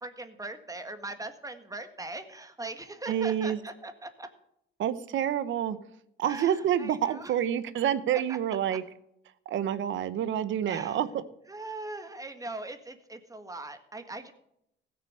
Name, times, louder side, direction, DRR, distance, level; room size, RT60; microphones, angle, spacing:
voice 1, 0.0-4.3 6.2-7.3 8.1-8.4 8.7-8.8 10.7-11.0 11.5-14.3, right 2 dB, 15° right, 9 dB, 1.6 m, -40 dB
voice 2, 3.1-3.6 4.8-5.8 6.2-8.8 9.5-11.2, right 10 dB, 75° right, 15 dB, 0.9 m, -28 dB
16.0 x 6.8 x 6.6 m, 0.76 s
cardioid pair, 90°, 20 cm